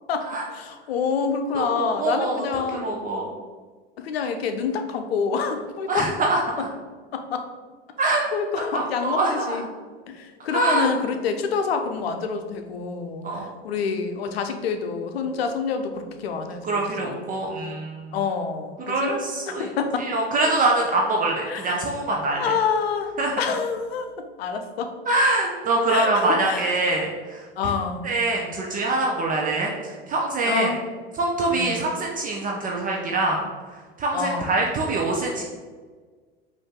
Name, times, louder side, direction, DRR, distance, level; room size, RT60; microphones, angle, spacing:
voice 1, 0.1-3.3 4.0-6.2 6.6-6.7 7.1-7.5 8.0-9.7 10.1-17.2 18.1-19.2 19.5-20.1 21.5-21.9 22.3-24.9 25.9-26.7 27.6-28.1 30.5-30.8 31.5-31.8 34.1-34.6, left 5 dB, 70° left, 6 dB, 0.6 m, -27 dB
voice 2, 1.5-2.4 2.7-3.3 5.9-6.4 8.0-8.2 8.7-9.6 10.5-10.9 13.2-13.4 16.6-18.2 18.9-19.7 20.0-22.5 23.2-23.3 25.1-27.4 28.0-29.7 30.1-30.7 31.2-33.4 34.0-35.4, right 2 dB, 25° right, -1 dB, 0.6 m, -24 dB
5.1 x 2.7 x 3.7 m, 1.5 s
figure-of-eight pair, 85°, 32 cm